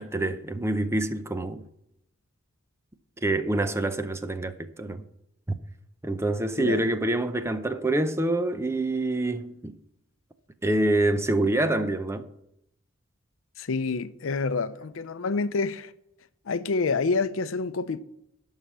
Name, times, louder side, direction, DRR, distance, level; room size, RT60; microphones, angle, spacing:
voice 1, 0.0-1.7 3.2-5.0 5.5-5.6 6.0-9.8 10.6-12.3, right 2 dB, 15° right, 0.6 m, -26 dB
voice 2, 6.6-6.9 13.6-15.9 16.5-18.0, left 4 dB, 80° left, 0.6 m, -28 dB
11.5 x 5.7 x 6.1 m
head